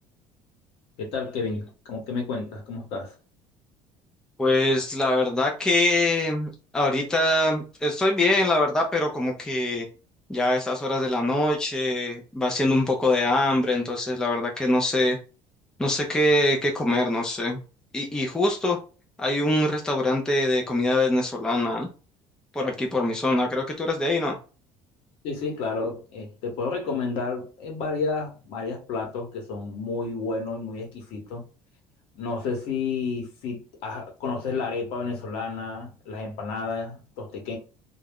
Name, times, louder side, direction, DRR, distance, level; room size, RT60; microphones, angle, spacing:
voice 1, 1.0-3.1 25.2-31.4 32.1-37.6, left 4 dB, 65° left, 1.0 m, -31 dB
voice 2, 4.4-9.9 10.3-15.2 15.8-17.6 17.9-18.8 19.2-21.9 22.5-24.4, left 1 dB, 5° left, 0.4 m, -23 dB
2.3 x 2.0 x 3.5 m
cardioid pair, 160°, 11 cm